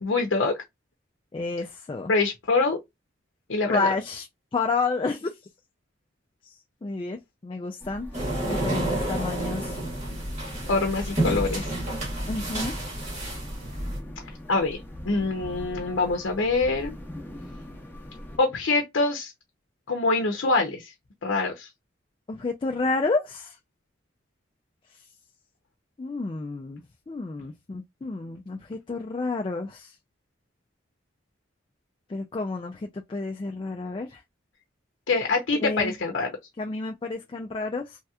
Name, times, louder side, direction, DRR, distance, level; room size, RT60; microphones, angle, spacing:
voice 1, 0.0-0.6 2.1-2.8 3.5-3.9 10.7-11.7 14.5-14.8 15.1-16.9 18.4-19.3 19.9-20.9 21.2-21.7 35.1-36.3, left 3 dB, 75° left, 0.6 m, -24 dB
voice 2, 1.3-2.1 3.7-4.3 4.5-5.3 6.5-6.6 6.8-8.1 8.4-9.8 12.3-12.7 22.3-23.6 26.0-29.9 32.1-34.2 35.5-35.9 36.6-38.0, left 3 dB, 25° left, 0.3 m, -30 dB
sound 1, 7.8-18.4, equal, 10° left, 0.8 m, -41 dB
sound 2, 8.1-14.0, right 1 dB, 35° right, 1.4 m, -30 dB
3.2 x 2.8 x 2.3 m
head